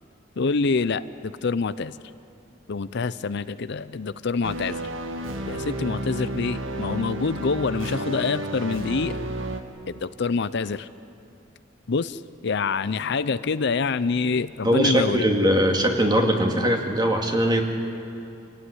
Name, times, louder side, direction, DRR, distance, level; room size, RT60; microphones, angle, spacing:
voice 1, 0.4-2.0 2.7-4.7 5.5-9.2 9.9-10.9 11.9-15.2, left 4 dB, 60° left, 14 dB, 0.6 m, -26 dB
sound 1, 4.4-9.6, right 1 dB, 85° right, 1.7 m, -31 dB
voice 2, 14.6-17.6, equal, 20° right, 3 dB, 2.3 m, -21 dB
27.0 x 17.0 x 9.9 m, 2.7 s
head